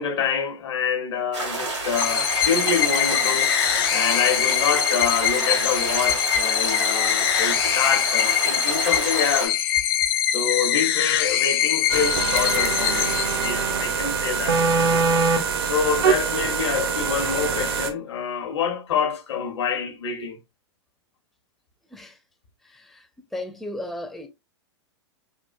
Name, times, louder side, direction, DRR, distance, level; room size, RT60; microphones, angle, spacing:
voice 1, 0.0-3.5 3.9-9.6 10.3-14.6 15.6-20.4, left 6 dB, 75° left, 0.9 m, -26 dB
sound 1, 1.3-9.5, right 3 dB, 90° right, 1.8 m, -29 dB
sound 2, 2.0-13.9, left 11 dB, 55° left, 0.4 m, -23 dB
sound 3, 11.9-17.9, right 5 dB, 60° right, 0.7 m, -23 dB
voice 2, 22.6-23.1 23.3-24.3, left 1 dB, ahead, 0.4 m, -35 dB
3.6 x 2.4 x 2.3 m
hypercardioid pair, 105°, 14 cm